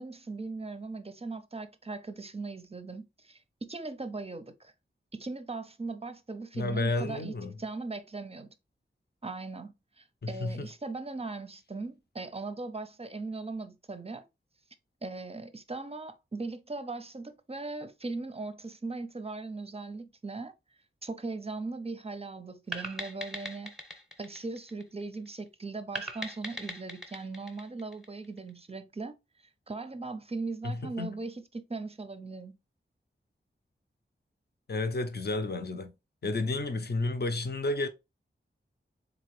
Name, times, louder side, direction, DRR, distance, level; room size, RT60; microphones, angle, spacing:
voice 1, 0.0-4.7 5.1-8.5 9.2-14.3 15.0-20.5 21.0-23.7 24.2-29.1 29.7-32.6, right 3 dB, 30° right, 0.5 m, -39 dB
voice 2, 6.5-7.5 10.2-10.7 30.6-31.2 34.7-35.9 36.2-37.9, left 2 dB, 50° left, 0.6 m, -31 dB
sound 1, 22.7-25.3 25.9-28.5, right 1 dB, ahead, 0.8 m, -40 dB
3.8 x 2.9 x 3.1 m
wide cardioid pair, 60°, 21 cm